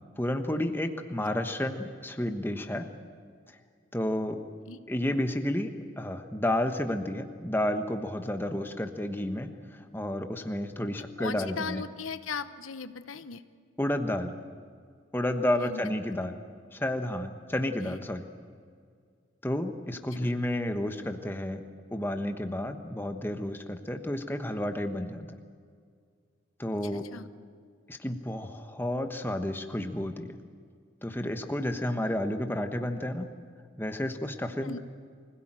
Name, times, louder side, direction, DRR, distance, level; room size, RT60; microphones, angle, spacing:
voice 1, 0.2-2.9 3.9-4.4 4.9-11.8 13.8-14.4 15.1-16.4 16.7-18.3 19.4-21.6 21.9-25.3 26.6-27.1 27.9-30.4 31.0-33.3 33.8-34.8, left 1 dB, 10° left, 6 dB, 1.2 m, -31 dB
voice 2, 11.2-13.4 15.6-15.9 17.8-18.0 20.2-20.3 26.9-27.3 34.6-34.8, left 5 dB, 90° left, 11 dB, 1.0 m, -38 dB
24.5 x 17.0 x 9.0 m, 2.1 s
head